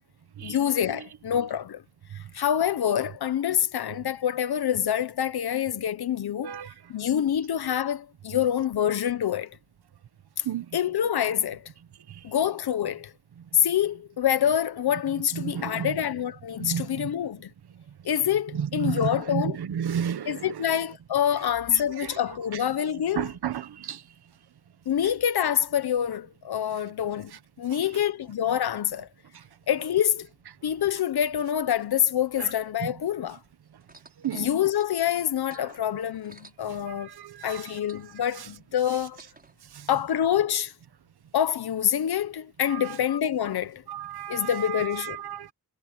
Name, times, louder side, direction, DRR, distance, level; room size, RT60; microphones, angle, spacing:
voice 1, 0.4-1.8 2.3-6.6 6.9-9.6 10.7-11.7 12.2-13.1 13.5-17.5 18.0-19.6 20.3-23.3 24.9-27.3 27.6-29.1 29.7-30.3 30.6-33.4 34.3-37.1 37.4-39.2 39.9-40.7 41.3-43.8 44.3-45.2, left 9 dB, 80° left, 1.0 m, -26 dB
voice 2, 15.3-16.0 16.6-17.1 18.5-20.5 22.0-22.1 23.2-24.0 32.4-32.5 32.8-32.9 34.2-34.5 36.8-37.7 39.7-39.9 42.7-42.9 43.9-45.5, right 9 dB, 85° right, 1.3 m, -32 dB
sound 1, 33.8-37.3 37.5-39.5 40.3-40.4, right 2 dB, 25° right, 6.7 m, -53 dB
wide cardioid pair, 170°, 37 cm